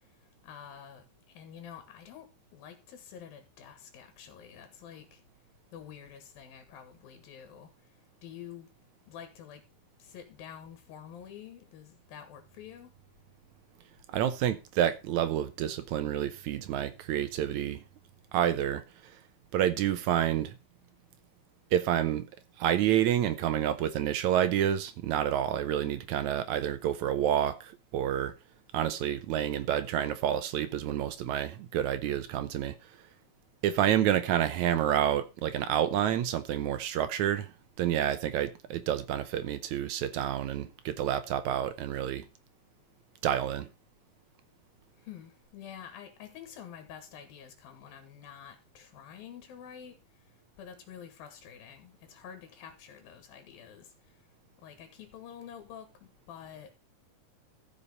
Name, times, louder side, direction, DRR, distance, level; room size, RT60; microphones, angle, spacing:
voice 1, 0.4-1.0 1.3-5.2 5.7-7.7 8.2-8.7 9.1-9.6 10.0-12.9 45.0-50.0 50.6-53.9 54.6-56.7, left 8 dB, 90° left, 3.4 m, -48 dB
voice 2, 14.1-17.8 18.3-19.2 19.5-20.6 21.7-22.3 22.6-28.3 28.7-33.0 33.6-42.3 43.2-43.7, right 11 dB, 70° right, 1.9 m, -29 dB
14.0 x 5.7 x 5.4 m
omnidirectional pair, 4.0 m